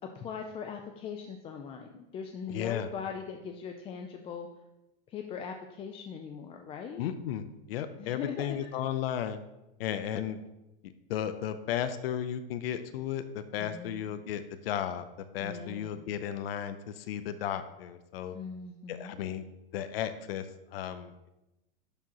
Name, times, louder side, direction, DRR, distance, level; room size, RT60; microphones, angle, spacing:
voice 1, 0.1-4.5 5.1-7.0 8.0-8.6 13.6-14.2 15.4-16.1 18.3-19.2, left 6 dB, 20° left, 4 dB, 0.4 m, -40 dB
voice 2, 2.5-2.9 7.0-9.4 9.8-10.4 11.1-15.0 15.3-18.4 18.9-19.4 19.7-20.5 20.7-21.3, left 10 dB, 85° left, 11 dB, 0.6 m, -34 dB
11.5 x 4.8 x 2.9 m, 0.96 s
supercardioid pair, 145°, 29 cm